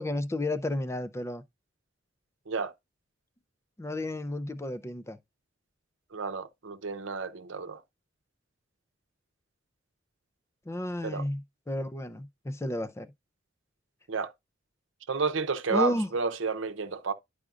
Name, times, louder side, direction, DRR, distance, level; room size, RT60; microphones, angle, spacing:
voice 1, 0.0-1.4 3.8-5.2 10.7-11.4 11.7-13.1 15.7-16.1, left 1 dB, 15° left, 0.4 m, -32 dB
voice 2, 6.1-7.8 11.0-11.2 14.1-14.3 15.1-17.1, right 4 dB, 80° right, 0.7 m, -31 dB
10.5 x 4.9 x 2.4 m
head